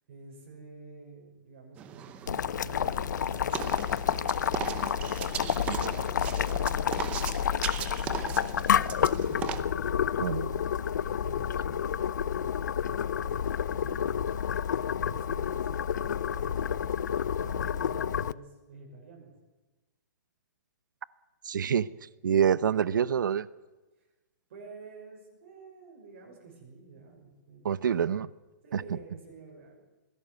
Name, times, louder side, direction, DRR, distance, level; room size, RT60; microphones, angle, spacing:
voice 1, 0.1-3.9 4.4-4.5 4.9-10.2 11.2-14.3 14.9-17.0 17.4-19.3 24.0-24.1 24.5-27.7 28.6-29.8, right 4 dB, 40° right, 6.1 m, -49 dB
sound 1, 1.8-9.6, right 10 dB, 10° right, 0.7 m, -38 dB
Boiling, 2.3-18.3, left 8 dB, 65° left, 0.6 m, -29 dB
voice 2, 10.2-10.6 21.4-21.9 22.2-23.5 27.6-28.3 28.7-28.8, right 8 dB, 85° right, 0.8 m, -26 dB
20.5 x 16.5 x 9.4 m
hypercardioid pair, 180°, 10 cm